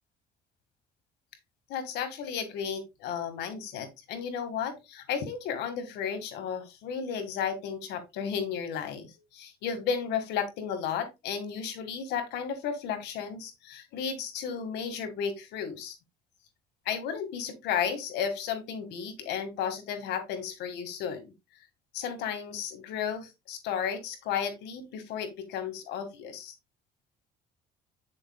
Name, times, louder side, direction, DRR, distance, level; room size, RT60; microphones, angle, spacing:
voice 1, 1.7-16.0 16.9-21.3 21.9-26.5, left 7 dB, 85° left, 7 dB, 1.9 m, -33 dB
8.9 x 6.5 x 2.3 m, 0.22 s
cardioid pair, 110°, 17 cm